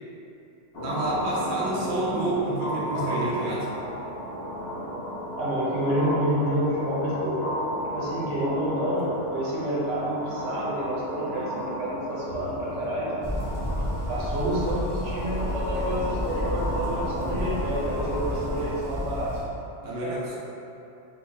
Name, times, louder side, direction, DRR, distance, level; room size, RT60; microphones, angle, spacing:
sound 1, 0.7-18.8, equal, 65° left, 0.8 m, -33 dB
voice 1, 0.7-3.7 19.8-20.4, right 2 dB, 50° right, -7 dB, 0.8 m, -29 dB
voice 2, 5.4-7.5 7.9-13.1 14.0-19.3 19.8-20.1, equal, 80° right, -7 dB, 1.2 m, -29 dB
sound 2, 13.2-19.4, left 1 dB, 30° right, 0.4 m, -31 dB
2.8 x 2.7 x 3.8 m, 2.8 s
omnidirectional pair, 1.2 m